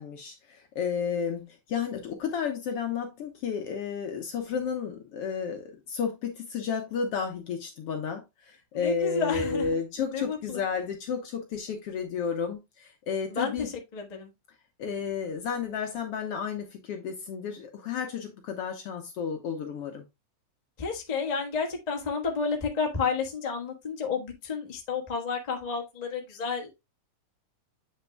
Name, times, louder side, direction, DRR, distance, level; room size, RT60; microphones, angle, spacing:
voice 1, 0.0-13.7 14.8-20.0, left 6 dB, 65° left, 1.6 m, -32 dB
voice 2, 8.7-9.7 10.1-10.6 13.3-14.3 20.8-26.7, left 5 dB, 25° left, 0.9 m, -31 dB
7.9 x 5.9 x 2.2 m
omnidirectional pair, 3.5 m